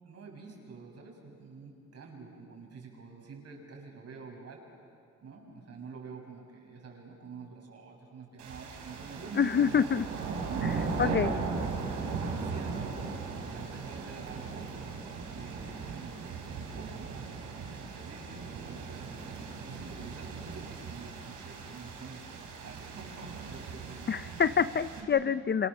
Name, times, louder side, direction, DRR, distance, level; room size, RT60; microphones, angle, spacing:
voice 1, 0.0-4.6 5.2-9.9 10.4-11.5 12.0-13.0 13.4-14.7 15.3-19.1 19.6-22.2 22.5-24.1 25.0-25.3, right 4 dB, 55° right, 0 dB, 7.3 m, -47 dB
sound 1, 8.4-25.0, right 4 dB, 85° right, 4.8 m, -38 dB
voice 2, 9.4-10.0 11.0-11.3 24.1-25.7, left 7 dB, 35° left, 13 dB, 0.7 m, -26 dB
28.0 x 27.5 x 7.1 m, 2.4 s
cardioid pair, 90°, 30 cm